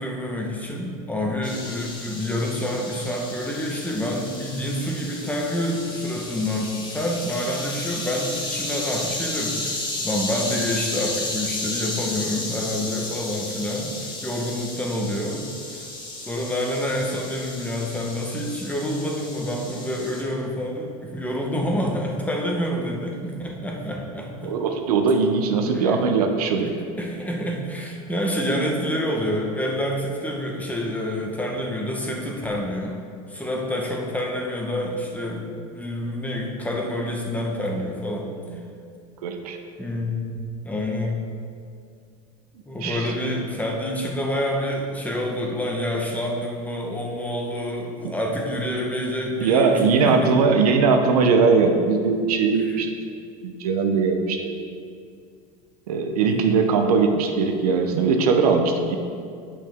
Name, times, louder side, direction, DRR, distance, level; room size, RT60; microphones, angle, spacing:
voice 1, 0.0-15.5 15.7-15.8 16.2-24.5 25.7-26.0 26.6-26.7 27.0-33.0 33.3-38.3 39.8-41.3 42.7-50.3 52.6-52.8 56.2-56.6, left 1 dB, 10° left, -1 dB, 1.1 m, -28 dB
sound 1, 1.4-20.2, left 2 dB, 25° left, 1.5 m, -33 dB
voice 2, 24.4-26.7 39.2-39.6 42.8-43.1 48.0-48.1 49.4-52.9 53.4-54.5 55.9-59.0, right 4 dB, 90° right, 5 dB, 0.8 m, -20 dB
8.4 x 5.6 x 3.6 m, 2.3 s
supercardioid pair, 105°, 19 cm